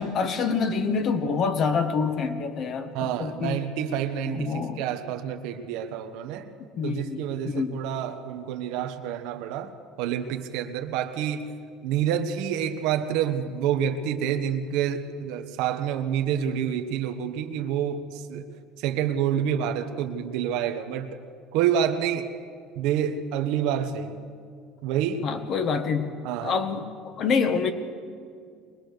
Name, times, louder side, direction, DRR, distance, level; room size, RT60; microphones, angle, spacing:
voice 1, 0.0-3.6 4.2-4.8 6.8-7.8 25.2-26.9 27.2-27.7, left 5 dB, 40° left, 8 dB, 1.5 m, -27 dB
voice 2, 2.9-6.5 6.8-11.5 11.8-18.4 18.8-21.2 21.5-22.3 22.8-24.2 24.8-25.3 26.2-26.6, right 9 dB, 75° right, 7 dB, 1.3 m, -28 dB
23.0 x 19.5 x 6.7 m, 2.3 s
cardioid pair, 140°, 0 cm